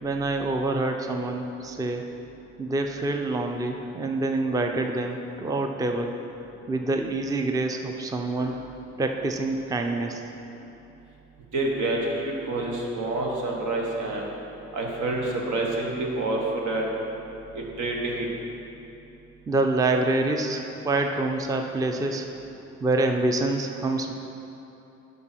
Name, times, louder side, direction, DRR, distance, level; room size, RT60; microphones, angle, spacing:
voice 1, 0.0-2.1 2.6-6.2 6.7-8.7 9.0-10.2 19.5-22.3 22.8-24.1, right 2 dB, 10° right, 4 dB, 0.4 m, -26 dB
voice 2, 11.5-14.3 14.7-16.9 17.5-18.3, right 2 dB, 75° right, -1 dB, 1.4 m, -28 dB
8.4 x 5.6 x 4.4 m, 3.0 s
cardioid pair, 90°, 30 cm